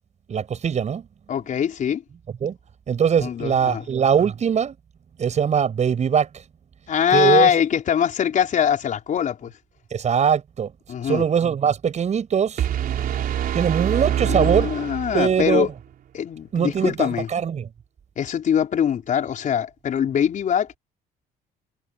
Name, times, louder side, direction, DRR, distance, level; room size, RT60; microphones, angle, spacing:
voice 1, 0.3-1.1 2.4-2.6 2.9-4.8 5.2-6.4 7.1-7.5 9.9-10.7 11.0-12.7 13.5-14.7 15.1-15.7 16.5-17.7, right 7 dB, 45° right, 7.2 m, -21 dB
voice 2, 1.3-2.0 3.2-3.8 6.9-9.5 10.9-11.2 14.3-15.7 16.1-17.3 18.2-20.8, left 8 dB, 50° left, 5.1 m, -22 dB
sound 1, 12.6-15.6, right 10 dB, 60° right, 3.7 m, -25 dB
cardioid pair, 110°, 17 cm